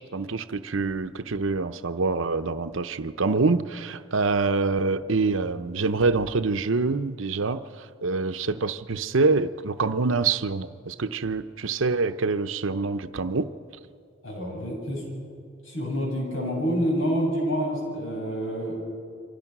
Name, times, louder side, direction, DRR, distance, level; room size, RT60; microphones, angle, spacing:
voice 1, 0.0-13.5, right 3 dB, 80° right, 10 dB, 0.8 m, -26 dB
voice 2, 14.2-15.0 15.6-18.8, equal, 85° left, -1 dB, 8.0 m, -27 dB
28.0 x 24.5 x 6.1 m, 2.4 s
head